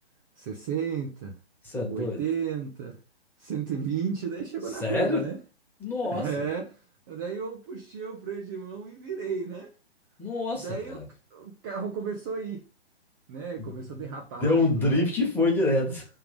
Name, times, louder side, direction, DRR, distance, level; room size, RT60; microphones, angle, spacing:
voice 1, 0.4-1.4 1.9-3.0 3.4-5.4 6.0-9.7 10.5-11.0 11.3-12.6 13.3-15.1, right 6 dB, 20° right, 0.6 m, -33 dB
voice 2, 1.6-2.2 4.8-5.2 5.8-6.4 10.2-11.0 14.4-16.0, left 2 dB, 5° left, 1.4 m, -26 dB
5.6 x 3.6 x 5.1 m
figure-of-eight pair, 130°, 32 cm